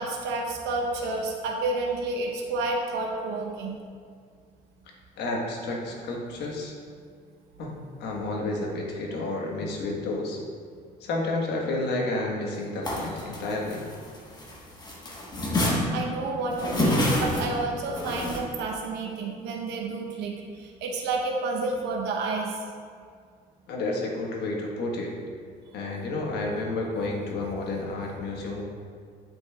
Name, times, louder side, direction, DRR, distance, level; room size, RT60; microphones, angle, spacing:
voice 1, 0.0-3.7 15.9-20.3 20.8-22.5, right 3 dB, 85° right, 0 dB, 0.9 m, -30 dB
voice 2, 5.2-6.7 7.6-10.4 11.0-13.8 23.7-25.1 25.7-28.6, left 2 dB, 80° left, -1 dB, 1.3 m, -30 dB
sound 1, 12.8-14.5 14.8-18.4, left 1 dB, 25° left, 1.2 m, -27 dB
9.2 x 5.3 x 2.3 m, 2.1 s
cardioid pair, 110°, 17 cm